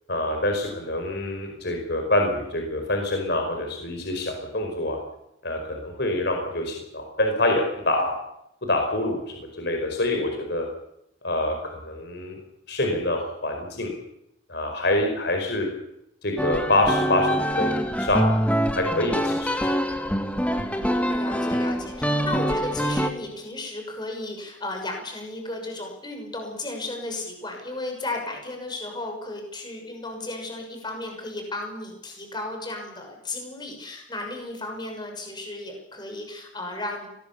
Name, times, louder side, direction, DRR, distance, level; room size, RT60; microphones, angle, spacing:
voice 1, 0.1-5.0 5.4-8.1 8.7-9.2 9.5-10.7 11.2-12.4 12.7-13.9 14.5-15.7 16.2-18.4 18.7-19.7, left 1 dB, 55° left, 3 dB, 5.0 m, -26 dB
sound 1, 16.4-23.1, equal, 5° left, 1.8 m, -25 dB
voice 2, 20.7-37.1, left 2 dB, 20° left, 3 dB, 6.4 m, -34 dB
24.0 x 20.0 x 7.1 m, 0.79 s
head